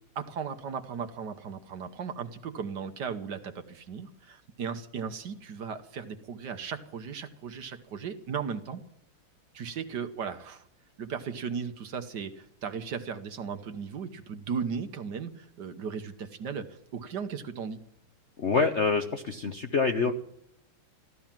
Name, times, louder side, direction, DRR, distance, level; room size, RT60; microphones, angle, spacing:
voice 1, 0.1-8.8 9.5-10.6 11.0-17.8, right 6 dB, 60° right, 9 dB, 1.5 m, -36 dB
voice 2, 18.4-20.1, left 4 dB, 50° left, 6 dB, 0.8 m, -26 dB
15.5 x 12.0 x 7.4 m, 0.72 s
omnidirectional pair, 2.3 m